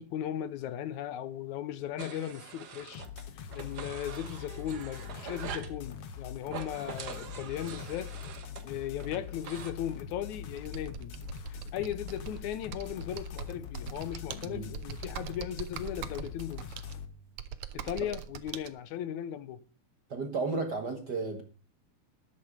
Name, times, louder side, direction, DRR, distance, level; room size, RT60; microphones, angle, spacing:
voice 1, 0.0-3.1 3.3-8.1 8.6-11.1 11.5-16.7 17.7-19.6, left 10 dB, 80° left, 2.1 m, -37 dB
sound 1, 2.0-3.2 3.5-5.8 6.4-9.7, right 7 dB, 90° right, 0.9 m, -44 dB
sound 2, 2.9-17.1, left 8 dB, 55° left, 2.0 m, -43 dB
Computer keyboard, 10.6-18.7, right 9 dB, 70° right, 1.4 m, -43 dB
voice 2, 20.1-21.4, right 3 dB, 45° right, 1.4 m, -33 dB
13.0 x 10.5 x 5.1 m
omnidirectional pair, 3.5 m